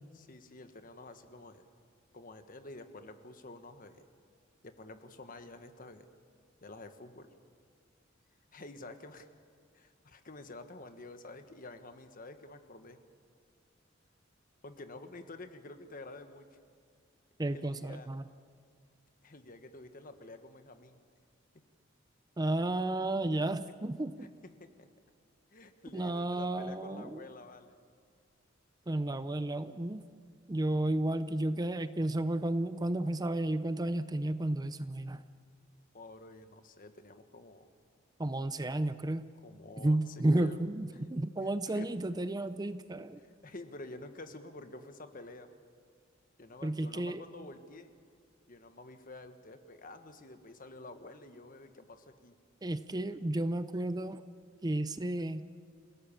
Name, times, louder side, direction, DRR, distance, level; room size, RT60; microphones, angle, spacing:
voice 1, 0.1-1.6 2.1-4.1 4.6-6.1 6.6-7.3 8.5-9.3 9.7-13.0 14.6-16.5 17.5-18.1 19.2-21.0 24.2-24.9 25.5-27.8 35.9-37.7 39.4-40.6 41.4-41.9 43.2-45.6 46.4-47.9 48.5-52.4, left 2 dB, 45° left, 8 dB, 1.4 m, -49 dB
voice 2, 17.4-18.2 22.4-24.3 25.9-27.2 28.9-30.0 30.5-35.2 38.2-39.3 39.8-43.2 46.6-47.2 52.6-54.2 54.6-55.5, right 1 dB, 20° right, 12 dB, 0.6 m, -32 dB
28.5 x 17.0 x 7.1 m, 2.2 s
head